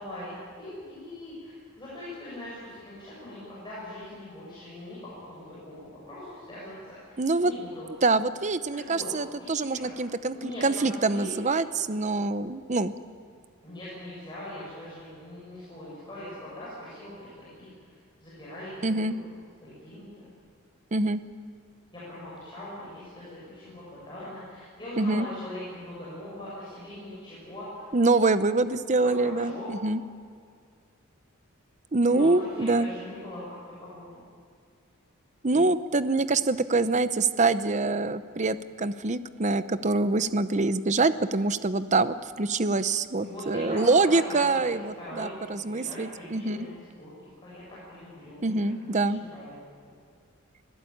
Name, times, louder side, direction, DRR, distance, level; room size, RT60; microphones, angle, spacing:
voice 1, 0.0-7.9 8.9-9.1 9.3-9.9 10.3-11.3 13.6-17.7 18.2-19.3 19.6-20.3 21.9-27.9 29.0-29.7 32.0-33.4 33.8-34.2 43.1-44.6 45.0-48.5 48.8-49.5, left 1 dB, 20° left, -9 dB, 7.2 m, -41 dB
voice 2, 7.2-7.5 8.0-12.9 18.8-19.2 20.9-21.2 25.0-25.3 27.9-30.0 31.9-32.9 35.4-46.6 48.4-49.2, right 3 dB, 35° right, 13 dB, 0.7 m, -25 dB
25.0 x 17.0 x 8.7 m, 2.1 s
head